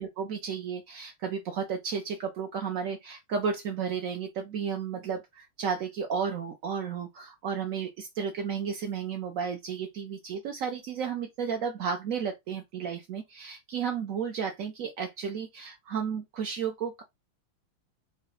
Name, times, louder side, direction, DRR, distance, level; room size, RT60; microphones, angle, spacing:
voice 1, 0.0-17.0, right 6 dB, 75° right, 0.7 m, -33 dB
5.1 x 2.1 x 4.0 m
omnidirectional pair, 2.3 m